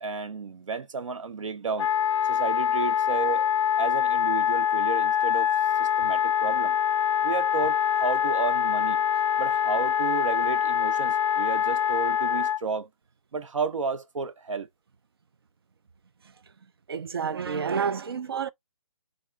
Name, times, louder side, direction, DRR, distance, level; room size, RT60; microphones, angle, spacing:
voice 1, 0.0-1.9 2.3-3.5 3.8-5.5 5.8-6.8 7.2-9.0 9.4-12.9 13.3-14.7, right 4 dB, 65° right, 0.8 m, -32 dB
Wind instrument woodwind instrument, 1.8-12.6, left 9 dB, 60° left, 0.4 m, -24 dB
voice 2, 16.9-18.5, right 6 dB, 45° right, 0.4 m, -29 dB
3.6 x 2.8 x 2.4 m
hypercardioid pair, 170°, 17 cm